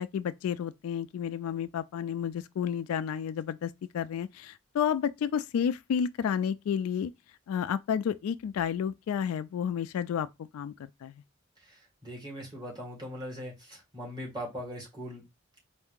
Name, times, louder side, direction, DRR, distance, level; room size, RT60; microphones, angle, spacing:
voice 1, 0.0-7.1 7.5-11.1, left 8 dB, 85° left, 0.3 m, -31 dB
voice 2, 11.6-15.3, equal, 20° right, 2.0 m, -40 dB
4.4 x 2.6 x 3.6 m
head